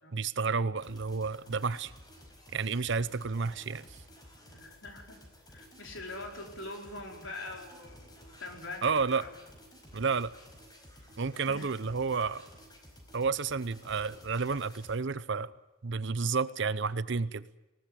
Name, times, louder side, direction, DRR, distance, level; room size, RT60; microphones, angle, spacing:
voice 1, 0.1-1.9 2.5-3.8 8.8-9.3 9.9-10.3 11.2-12.4 13.1-15.5 15.8-17.4, right 5 dB, 60° right, 17 dB, 0.7 m, -31 dB
sound 1, 0.8-15.0, equal, 20° left, 4.8 m, -54 dB
voice 2, 4.4-5.2 5.5-9.3 11.5-11.7, left 2 dB, 65° left, 2 dB, 4.5 m, -44 dB
20.0 x 18.5 x 9.8 m, 1.0 s
head